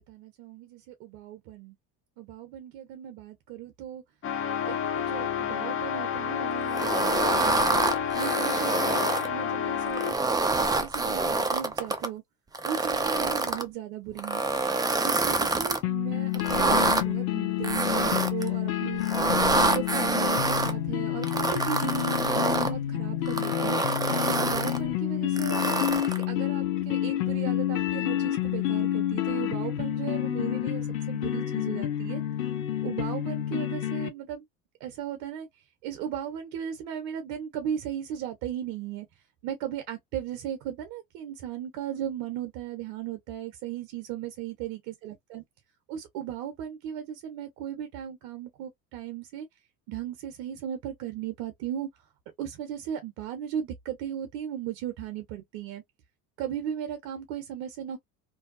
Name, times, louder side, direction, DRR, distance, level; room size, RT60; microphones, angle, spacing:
voice 1, 0.0-1.8 2.2-4.0 4.6-7.7 8.1-12.2 12.6-14.4 14.9-19.0 19.4-23.8 24.2-32.2 32.8-34.4 34.8-35.5 35.8-39.1 39.4-45.4 45.9-49.5 49.9-51.9 52.4-55.8 56.4-58.0, right 10 dB, 70° right, 0.8 m, -36 dB
sound 1, 4.2-10.3, left 8 dB, 30° left, 0.7 m, -30 dB
sound 2, 6.7-9.3 9.9-12.1 12.5-13.6 14.2-15.8 16.3-17.0 17.6-18.5 19.0-20.7 21.2-22.7 23.3-24.8 25.4-26.2, right 3 dB, 10° right, 0.5 m, -26 dB
sound 3, 15.8-34.1, left 12 dB, 85° left, 0.6 m, -29 dB
2.6 x 2.2 x 2.4 m
hypercardioid pair, 75°, 40 cm